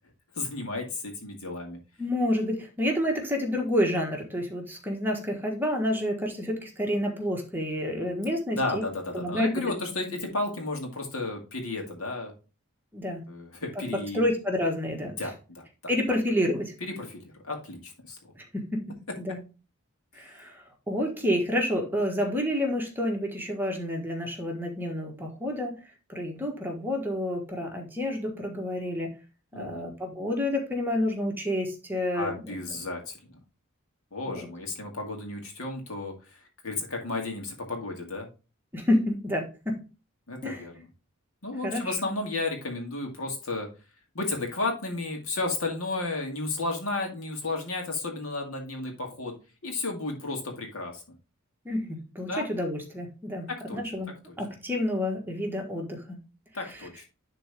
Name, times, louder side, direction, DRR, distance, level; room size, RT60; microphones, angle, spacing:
voice 1, 0.4-1.8 8.5-12.3 13.3-14.3 15.0-15.6 16.8-18.3 20.1-20.5 29.5-29.9 32.1-33.2 34.1-38.3 40.3-40.9 41.4-43.7 44.1-49.3 49.6-51.0 52.3-52.5 53.5-53.8 56.5-57.0, left 2 dB, 70° left, 2 dB, 2.2 m, -33 dB
voice 2, 2.0-8.8 9.1-9.5 12.9-13.2 14.1-15.1 15.9-16.7 18.4-18.8 19.2-19.4 20.1-25.8 26.1-29.1 29.5-32.8 34.3-34.5 38.7-39.7 40.4-40.6 41.6-41.9 51.6-54.1 54.4-56.2, left 1 dB, 10° right, 1 dB, 1.6 m, -29 dB
10.5 x 3.9 x 3.5 m, 0.32 s
head